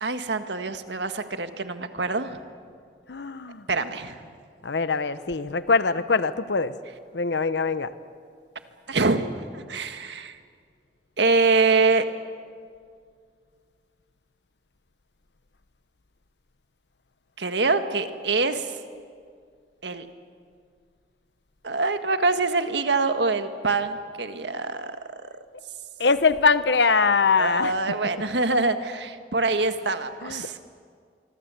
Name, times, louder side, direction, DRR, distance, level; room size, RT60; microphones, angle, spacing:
voice 1, 0.0-2.4 3.7-4.2 8.9-9.3 9.5-10.4 11.2-12.0 17.4-18.7 19.8-20.1 21.6-25.0 27.4-30.6, right 3 dB, 85° right, 8 dB, 1.6 m, -24 dB
voice 2, 3.1-3.7 4.6-6.7 7.1-7.9 26.0-27.8 30.2-30.5, left 4 dB, 80° left, 13 dB, 0.9 m, -22 dB
25.0 x 24.5 x 8.2 m, 2.1 s
head